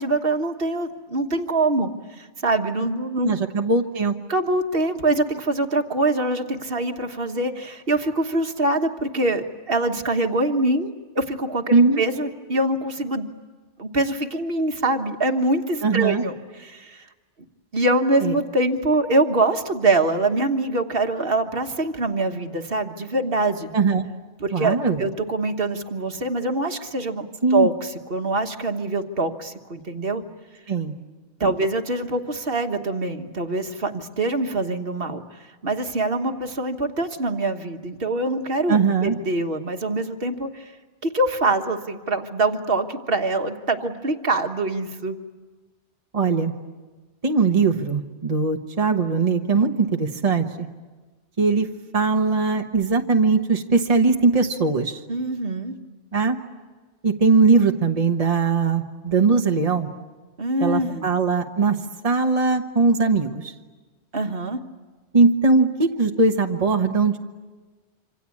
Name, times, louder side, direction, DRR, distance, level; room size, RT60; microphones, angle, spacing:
voice 1, 0.0-3.3 4.3-10.9 11.1-13.3 13.8-17.0 17.7-23.7 24.4-27.3 27.5-30.2 31.4-40.7 41.0-45.2 55.1-55.7 60.4-61.1 64.1-64.6, right 2 dB, 55° right, 5 dB, 1.6 m, -24 dB
voice 2, 3.2-4.1 11.7-12.0 15.8-16.2 18.2-18.3 23.7-24.1 24.5-25.0 27.4-27.7 30.7-30.9 31.4-31.5 38.7-39.2 46.1-46.5 47.2-50.7 51.4-51.7 51.9-55.0 56.1-56.4 57.0-59.9 60.6-61.8 62.0-63.5 65.1-67.2, right 4 dB, 35° right, 3 dB, 1.2 m, -20 dB
26.5 x 26.0 x 8.5 m, 1.3 s
omnidirectional pair, 1.2 m